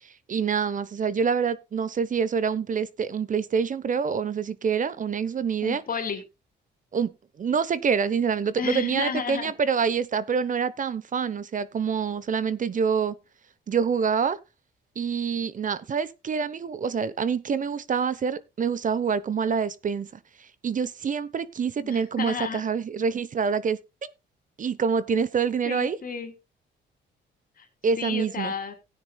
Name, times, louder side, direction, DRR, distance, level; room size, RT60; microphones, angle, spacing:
voice 1, 0.3-5.8 6.9-7.1 7.4-13.1 13.7-14.4 15.0-20.1 20.6-23.8 24.6-26.0 27.8-28.5, right 6 dB, 40° right, 0.9 m, -26 dB
voice 2, 5.6-6.2 8.6-9.5 21.8-22.6 25.6-26.3 27.6-27.7 28.0-28.7, left 5 dB, 45° left, 3.2 m, -32 dB
17.0 x 9.6 x 2.3 m
cardioid pair, 90°, 20 cm